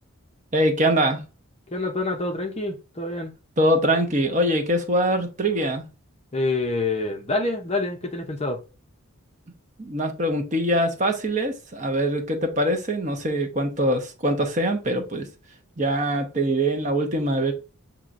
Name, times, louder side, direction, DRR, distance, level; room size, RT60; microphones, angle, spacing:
voice 1, 0.5-1.2 3.6-5.8 9.8-15.3 15.8-17.5, right 1 dB, 35° right, 0.9 m, -23 dB
voice 2, 1.7-3.3 6.3-8.6, left 2 dB, 30° left, 0.7 m, -27 dB
7.1 x 3.0 x 2.5 m
head